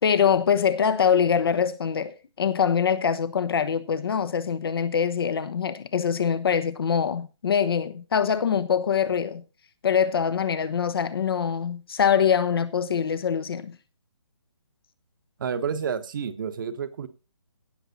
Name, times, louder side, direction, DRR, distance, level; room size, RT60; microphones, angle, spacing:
voice 1, 0.0-9.4 9.8-13.7, left 7 dB, 50° left, 1.2 m, -24 dB
voice 2, 15.4-17.1, right 7 dB, 45° right, 1.2 m, -30 dB
16.5 x 6.0 x 4.2 m
figure-of-eight pair, 150°, 15 cm